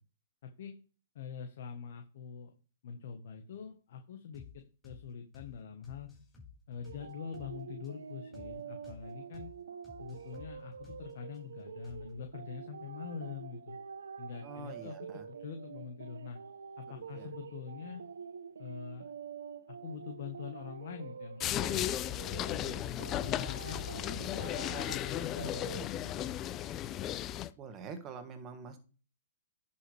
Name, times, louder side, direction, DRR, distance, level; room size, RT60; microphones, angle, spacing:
voice 1, 0.4-0.7 1.1-2.5 2.8-6.1 6.7-9.5 10.0-13.8 14.2-16.4 16.8-18.0 18.6-19.1 19.7-26.4, left 7 dB, 60° left, 5 dB, 1.4 m, -45 dB
sound 1, 4.3-4.5 4.8-5.0 5.3-5.5 5.8-7.5 7.8-7.9 8.3-8.5 8.8-9.0 9.3-9.5 9.8-11.4 11.8-12.3, left 5 dB, 10° left, 5.1 m, -53 dB
sound 2, 6.8-25.9, right 6 dB, 85° right, 0.9 m, -47 dB
voice 2, 14.4-15.3 16.9-17.3 27.6-28.8, right 5 dB, 25° right, 7 dB, 1.7 m, -46 dB
sound 3, 21.4-27.5, left 12 dB, 25° left, 0.5 m, -35 dB
10.5 x 5.7 x 3.4 m, 0.36 s
hypercardioid pair, 135°, 0 cm